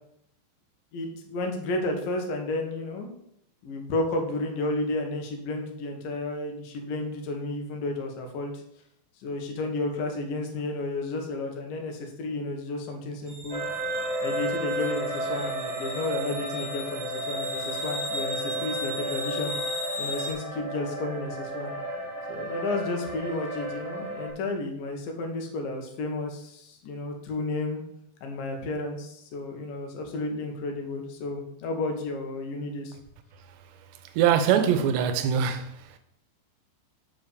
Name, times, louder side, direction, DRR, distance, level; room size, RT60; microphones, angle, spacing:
voice 1, 0.9-3.1 3.6-8.6 9.2-13.6 14.2-19.5 20.0-21.7 22.3-27.8 28.2-33.0, left 2 dB, 65° left, 2.5 m, -32 dB
sound 1, 13.3-20.3, equal, 10° left, 2.3 m, -37 dB
sound 2, 13.5-24.3, equal, 50° right, 1.6 m, -33 dB
voice 2, 34.2-35.9, right 8 dB, 80° right, 2.8 m, -23 dB
7.7 x 4.4 x 6.6 m
omnidirectional pair, 5.3 m